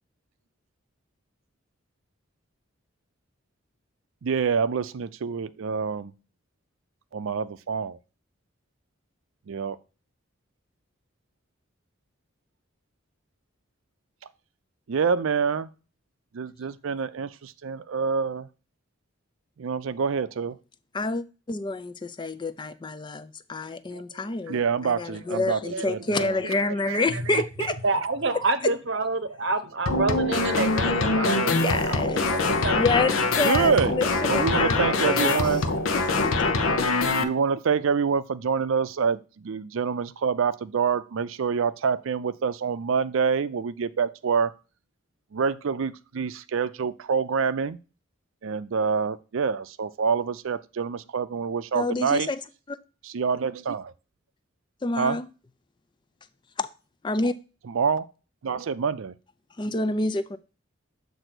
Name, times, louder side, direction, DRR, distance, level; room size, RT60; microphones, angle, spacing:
voice 1, 4.2-6.1 7.1-8.0 9.5-9.8 14.9-15.7 16.3-18.5 19.6-20.5 23.9-24.0 24.5-27.0 27.3-27.4 27.9-28.3 33.4-33.9 34.3-35.6 37.2-44.5 45.3-47.8 48.4-52.3 53.0-53.9 55.0-55.2 57.7-58.1 58.4-59.1, right 6 dB, 75° right, 0.4 m, -26 dB
voice 2, 20.9-27.8 28.6-28.7 31.3-32.3 32.7-35.4 35.9-36.6 51.7-52.4 52.7-52.8 54.8-55.3 56.6-56.7 57.0-57.3 59.6-60.4, left 3 dB, 20° left, 0.3 m, -28 dB
voice 3, 27.8-32.8 35.2-35.4 35.6-35.8, right 3 dB, 60° right, 0.8 m, -28 dB
sound 1, 29.9-37.2, left 3 dB, 90° left, 0.8 m, -24 dB
7.8 x 2.7 x 5.9 m
head